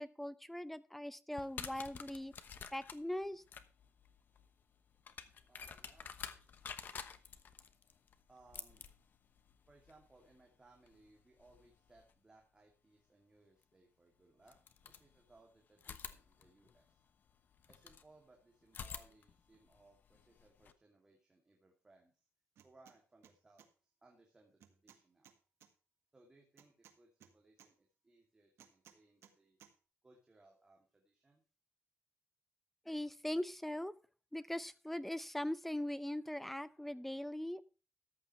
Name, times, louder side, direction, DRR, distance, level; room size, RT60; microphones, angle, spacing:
voice 1, 0.0-2.3 2.7-3.4 32.9-33.9 34.3-37.6, left 1 dB, 5° left, 15 dB, 0.6 m, -40 dB
sound 1, 1.3-12.1 13.6-13.7 14.4-15.4 15.8-18.1 18.7-20.7, left 7 dB, 45° left, 1.0 m, -51 dB
voice 2, 5.5-6.5 8.3-8.8 9.7-14.5 14.8-17.0 17.7-22.3 22.6-25.3 26.1-29.6 30.0-31.4, right 2 dB, 15° right, 0 dB, 2.7 m, -66 dB
sound 2, 22.6-23.0 23.2-23.7 24.6-25.7 26.6-27.7 28.6-29.3 29.6-29.7, right 9 dB, 80° right, 1.7 m, -62 dB
14.0 x 9.9 x 3.2 m, 0.35 s
wide cardioid pair, 160°, 4 cm